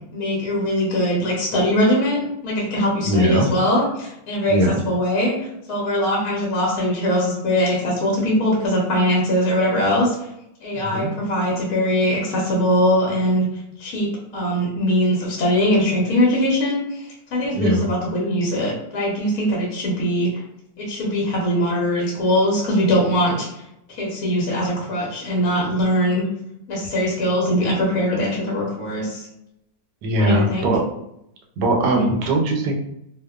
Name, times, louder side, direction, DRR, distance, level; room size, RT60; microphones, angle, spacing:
voice 1, 0.1-4.6 4.8-5.3 5.7-10.1 10.6-13.5 13.8-14.1 14.3-20.3 20.8-23.5 23.9-26.2 26.7-29.3 30.2-30.7 31.9-32.1, equal, 65° left, -4 dB, 1.1 m, -21 dB
voice 2, 3.0-3.5 4.5-4.8 10.7-11.1 17.5-17.9 30.0-30.8 31.6-32.8, right 1 dB, 75° right, 1 dB, 1.1 m, -20 dB
2.8 x 2.1 x 2.2 m, 0.81 s
omnidirectional pair, 1.8 m